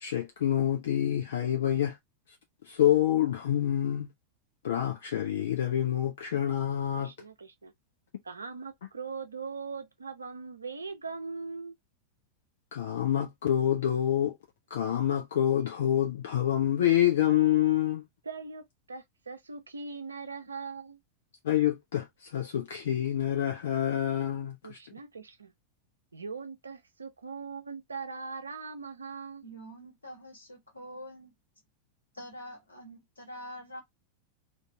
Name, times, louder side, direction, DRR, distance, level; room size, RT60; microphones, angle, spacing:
voice 1, 0.0-2.0 2.6-4.1 4.6-7.1 12.7-14.4 14.7-18.0 21.4-24.8, left 11 dB, 60° left, 0.5 m, -27 dB
voice 2, 7.0-7.7 8.2-11.7 18.2-21.0 24.6-25.5 26.1-29.4, right 4 dB, 75° right, 0.5 m, -40 dB
voice 3, 29.4-31.3 32.1-33.8, equal, 80° left, 1.5 m, -45 dB
2.6 x 2.4 x 3.2 m
figure-of-eight pair, 90°, 0 cm